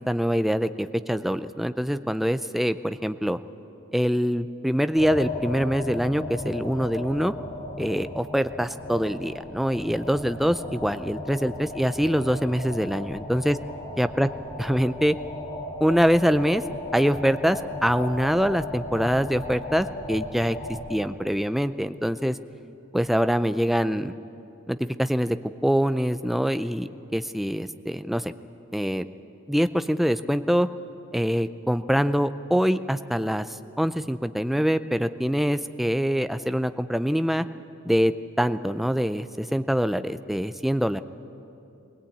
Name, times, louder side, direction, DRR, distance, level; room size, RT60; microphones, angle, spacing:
voice 1, 0.0-3.4 3.9-7.3 7.8-13.6 14.0-14.3 14.6-15.2 15.8-16.6 16.9-20.6 20.9-22.4 22.9-24.1 24.7-25.4 25.6-28.3 28.7-29.1 29.5-30.7 31.1-37.4 37.8-41.0, equal, ahead, 11 dB, 0.4 m, -24 dB
sound 1, 5.0-21.0, left 1 dB, 30° left, 2.4 m, -36 dB
20.5 x 19.5 x 8.6 m, 2.8 s
head